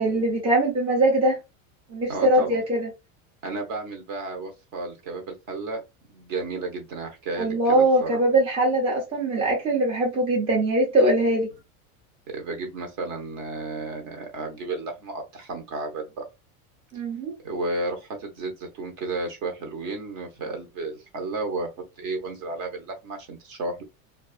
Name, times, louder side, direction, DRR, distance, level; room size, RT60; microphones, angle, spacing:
voice 1, 0.0-1.4 1.9-2.9 7.4-11.5 16.9-17.3, right 1 dB, 15° right, 0.5 m, -22 dB
voice 2, 2.1-2.6 3.4-5.8 6.1-8.2 12.3-16.2 17.4-21.7 22.0-23.8, right 3 dB, 45° right, 0.9 m, -32 dB
2.4 x 2.3 x 2.3 m
supercardioid pair, 150°, 41 cm